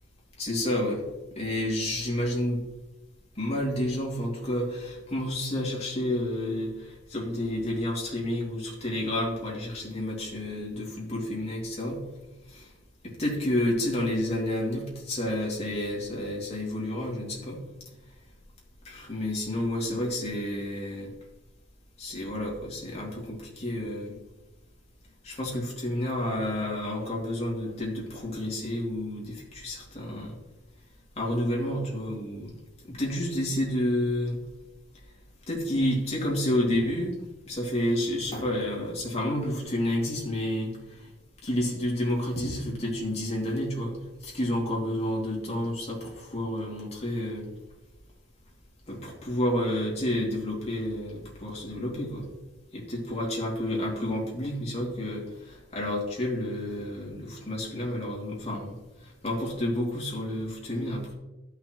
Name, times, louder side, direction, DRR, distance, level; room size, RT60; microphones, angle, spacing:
voice 1, 0.4-1.0 1.3-2.6 3.4-12.0 12.5-12.7 13.0-17.6 18.8-21.1 22.0-24.2 25.2-30.4 31.2-32.5 32.9-34.4 35.5-37.2 37.5-41.1 41.4-43.9 44.2-47.5 48.9-52.2 52.7-58.8 59.0-61.1, left 1 dB, 35° left, -3 dB, 2.5 m, -30 dB
13.0 x 5.7 x 3.0 m, 1.1 s
head